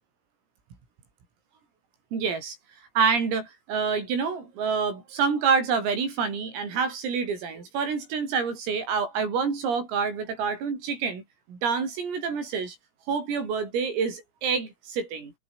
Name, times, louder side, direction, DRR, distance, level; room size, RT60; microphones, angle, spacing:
voice 1, 2.1-2.6 3.0-11.2 11.5-12.8 13.1-15.3, right 5 dB, 90° right, 9.8 m, -27 dB
omnidirectional pair, 5.8 m